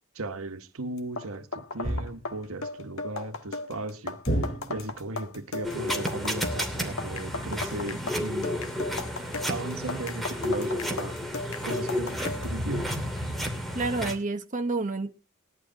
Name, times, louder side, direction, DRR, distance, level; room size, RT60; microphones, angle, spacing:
voice 1, 0.1-4.2 4.7-8.6 9.5-13.0, right 2 dB, 80° right, 1.4 m, -36 dB
sound 1, 1.0-12.5, left 3 dB, 75° left, 1.4 m, -37 dB
sound 2, 1.8-2.4 4.3-5.1, right 1 dB, 40° left, 6.7 m, -30 dB
sound 3, 5.6-14.2, left 1 dB, ahead, 2.7 m, -32 dB
voice 2, 13.7-15.1, right 3 dB, 40° right, 1.0 m, -29 dB
20.5 x 11.5 x 2.8 m
head